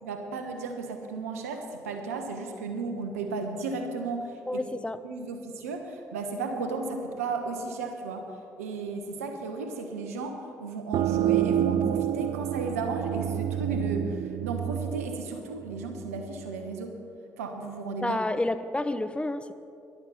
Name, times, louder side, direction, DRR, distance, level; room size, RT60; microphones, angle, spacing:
voice 1, 0.0-4.6 5.0-8.3 8.6-16.9 17.4-18.2, right 4 dB, 90° right, 5 dB, 1.2 m, -34 dB
voice 2, 4.5-5.0 18.0-19.5, left 2 dB, 15° left, 11 dB, 0.8 m, -29 dB
sound 1, 10.9-16.3, right 10 dB, 60° right, 0.4 m, -28 dB
13.5 x 11.5 x 5.9 m, 2.6 s
hypercardioid pair, 50°, 8 cm